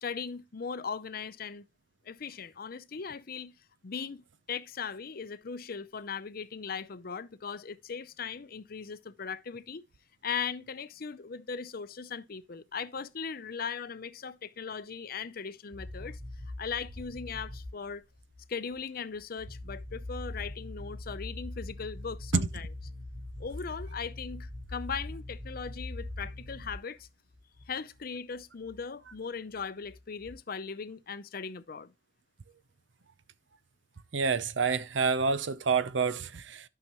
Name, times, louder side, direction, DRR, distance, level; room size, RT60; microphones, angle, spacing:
voice 1, 0.0-1.6 2.1-3.5 3.8-9.8 10.2-16.2 16.6-18.0 18.5-22.7 23.4-27.1 27.7-31.9, left 6 dB, 55° left, 0.6 m, -38 dB
sound 1, 15.7-18.4 18.7-18.8 19.1-27.0 27.3-27.7 28.0-28.1 28.3-28.4 28.6-28.8 29.1-29.2 29.5-30.3, left 1 dB, 25° right, 3.7 m, -42 dB
voice 2, 34.1-36.6, right 5 dB, 85° right, 0.7 m, -28 dB
11.5 x 5.8 x 3.0 m
head